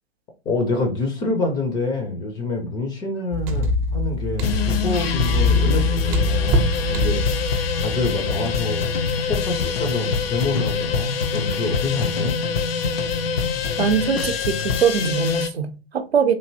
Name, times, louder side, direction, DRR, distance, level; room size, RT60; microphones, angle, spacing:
voice 1, 0.5-7.5 7.8-8.9 9.3-12.4, left 3 dB, 15° left, 0.3 m, -27 dB
sound 1, 3.3-9.3 9.6-9.7, left 2 dB, 35° right, 0.6 m, -23 dB
sound 2, 4.4-15.5, left 5 dB, 65° left, 0.5 m, -25 dB
voice 2, 13.8-16.3, right 7 dB, 75° right, 0.6 m, -22 dB
3.2 x 2.6 x 2.6 m
figure-of-eight pair, 105°, 32 cm